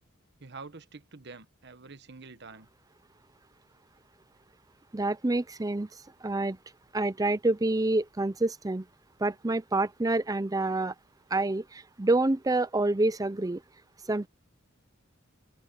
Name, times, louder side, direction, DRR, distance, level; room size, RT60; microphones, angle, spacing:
voice 1, 0.4-2.7, right 4 dB, 55° right, 1.2 m, -47 dB
voice 2, 4.9-5.9 6.2-6.6 6.9-8.8 9.2-10.9 11.3-13.6 14.1-14.3, right 2 dB, 15° right, 0.6 m, -27 dB
head